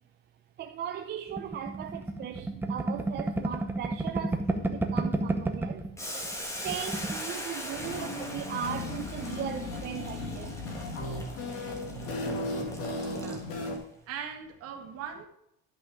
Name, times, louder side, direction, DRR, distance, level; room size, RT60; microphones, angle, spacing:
voice 1, 0.6-5.8 6.6-10.6 13.4-13.6, right 9 dB, 35° right, 0.6 m, -38 dB
sound 1, 1.4-5.9 6.2-6.3 6.6-7.2, right 2 dB, 5° right, 0.8 m, -31 dB
Boiling, 6.0-13.8, equal, 10° left, 1.5 m, -41 dB
sound 2, 7.7-13.8, left 2 dB, 55° left, 2.3 m, -36 dB
voice 2, 13.1-13.4 14.1-15.3, right 7 dB, 50° right, 1.8 m, -40 dB
11.0 x 6.1 x 4.9 m
cardioid pair, 170°, 29 cm